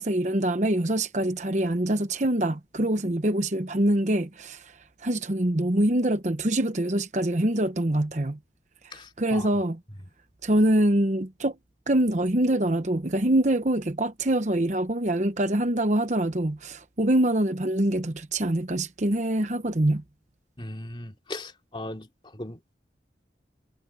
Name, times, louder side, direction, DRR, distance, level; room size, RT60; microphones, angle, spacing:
voice 1, 0.0-4.7 5.0-8.4 8.8-9.8 10.4-11.6 11.9-20.0, right 1 dB, 40° right, 1.0 m, -24 dB
voice 2, 8.9-9.5 20.6-22.8, left 1 dB, 25° left, 2.8 m, -38 dB
head